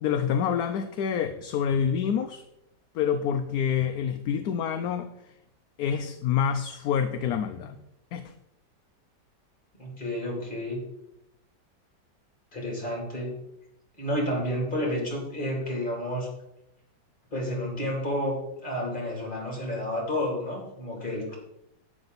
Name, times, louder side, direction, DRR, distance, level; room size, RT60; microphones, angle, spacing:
voice 1, 0.0-2.4 2.9-5.1 5.8-7.8 8.1-8.2, left 8 dB, 70° left, 8 dB, 1.0 m, -27 dB
voice 2, 9.8-10.8 12.5-13.3 14.0-16.3 17.3-21.4, left 1 dB, 25° left, -1 dB, 3.6 m, -30 dB
11.0 x 8.8 x 4.1 m, 0.83 s
omnidirectional pair, 1.9 m